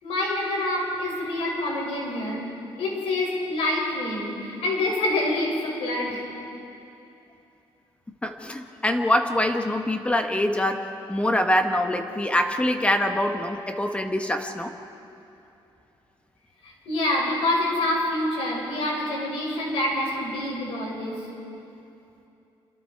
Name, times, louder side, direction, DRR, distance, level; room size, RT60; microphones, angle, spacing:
voice 1, 0.0-2.4 2.8-6.2 16.8-21.2, left 1 dB, 90° left, -2 dB, 6.7 m, -26 dB
voice 2, 8.2-14.7, left 1 dB, 10° left, 5 dB, 1.3 m, -24 dB
27.5 x 26.0 x 4.7 m, 2.8 s
cardioid pair, 130°, 10 cm